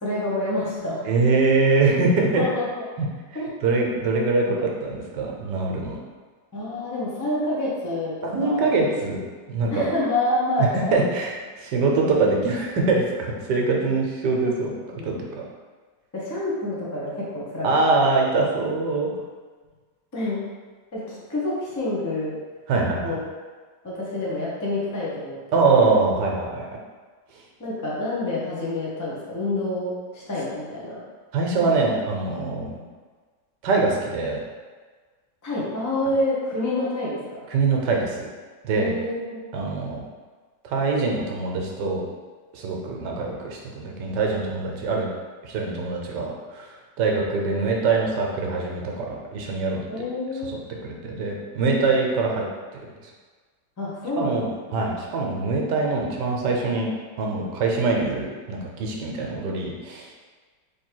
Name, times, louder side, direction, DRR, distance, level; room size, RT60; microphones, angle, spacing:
voice 1, 0.0-1.0 2.3-2.7 3.3-3.5 4.4-4.6 6.5-8.7 9.7-11.2 14.9-15.0 16.1-17.7 20.1-20.4 20.9-22.3 23.0-23.2 23.8-25.4 25.8-25.9 27.6-31.0 35.4-37.4 38.8-39.4 49.9-50.5 53.8-54.4, left 1 dB, 15° left, -7 dB, 0.6 m, -27 dB
voice 2, 1.0-2.4 3.0-3.1 3.3-6.0 8.2-9.9 10.7-14.7 15.0-15.5 17.6-19.1 22.7-23.2 25.5-26.7 31.3-32.8 33.6-34.4 37.5-38.3 38.6-38.9 39.5-40.0 40.6-42.0 42.5-45.1 45.4-49.8 50.8-52.4 54.2-56.9 57.2-60.1, right 3 dB, 75° right, 0 dB, 1.3 m, -23 dB
3.3 x 3.3 x 4.5 m, 1.5 s
omnidirectional pair, 2.0 m